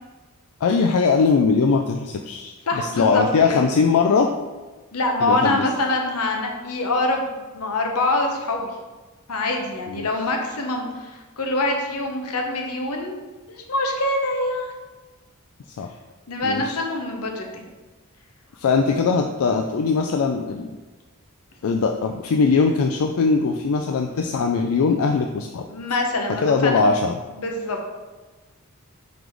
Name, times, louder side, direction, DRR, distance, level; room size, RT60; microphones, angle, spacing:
voice 1, 0.6-4.3 5.2-5.6 9.9-10.1 15.8-15.9 16.4-16.8 18.6-20.7 21.6-25.7 26.4-27.2, left 4 dB, 70° left, 4 dB, 0.4 m, -20 dB
voice 2, 2.7-3.2 3.5-3.7 4.9-8.7 9.3-13.2 13.5-14.7 16.3-17.6 18.9-19.0 25.7-26.8 27.3-27.8, left 2 dB, 85° left, 2 dB, 1.0 m, -25 dB
5.0 x 4.0 x 4.6 m, 1.2 s
head